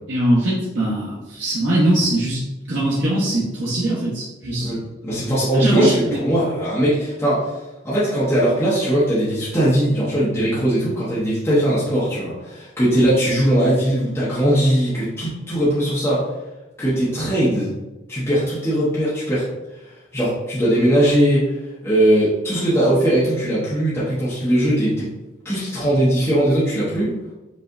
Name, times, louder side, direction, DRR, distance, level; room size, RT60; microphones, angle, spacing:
voice 1, 0.1-2.4 2.7-4.7 5.5-6.2, right 1 dB, 75° right, -7 dB, 1.0 m, -21 dB
voice 2, 5.0-7.6 7.8-16.3 16.8-17.7 18.1-19.5 20.1-25.1 25.4-27.2, right 1 dB, 15° left, -10 dB, 1.1 m, -19 dB
5.2 x 3.3 x 2.6 m, 1.1 s
head